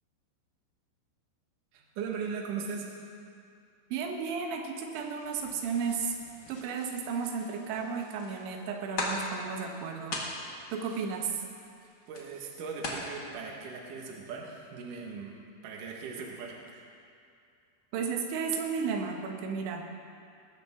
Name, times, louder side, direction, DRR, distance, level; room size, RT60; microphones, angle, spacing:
voice 1, 1.7-2.9 10.9-11.0 12.1-16.9, right 5 dB, 60° right, 0 dB, 2.6 m, -39 dB
voice 2, 3.9-6.2 6.5-10.2 10.7-11.4 17.9-19.8, right 5 dB, 90° right, 2 dB, 3.5 m, -33 dB
sound 1, 4.7-13.1, left 2 dB, 75° left, 1.0 m, -41 dB
20.5 x 13.0 x 3.7 m, 2.4 s
omnidirectional pair, 5.1 m